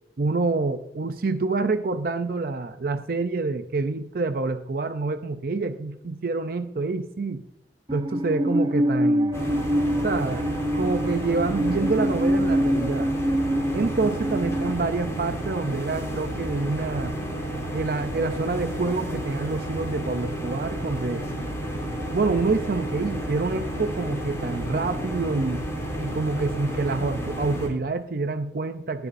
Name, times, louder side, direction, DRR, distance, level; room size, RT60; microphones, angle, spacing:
voice 1, 0.2-7.4 7.9-9.4 10.0-10.5 10.7-13.1 13.7-17.1 17.7-21.2 22.1-25.7 26.0-29.1, right 3 dB, 55° right, 8 dB, 0.5 m, -27 dB
Musical instrument, 7.9-14.7, equal, 25° right, 0.8 m, -25 dB
sound 1, 9.3-27.7, right 1 dB, 15° left, 2.8 m, -31 dB
19.5 x 6.9 x 2.6 m, 0.84 s
head